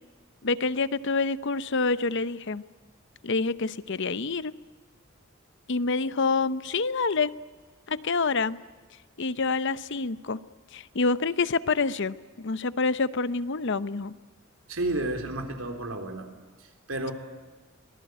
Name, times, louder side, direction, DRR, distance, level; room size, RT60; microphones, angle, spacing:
voice 1, 0.4-2.6 3.2-4.5 5.7-7.3 7.9-8.6 9.2-10.4 10.7-14.1, left 4 dB, 60° left, 15 dB, 0.8 m, -27 dB
voice 2, 14.7-16.3 16.6-17.1, right 2 dB, 85° right, 5 dB, 3.8 m, -31 dB
25.0 x 19.0 x 9.3 m, 1.4 s
head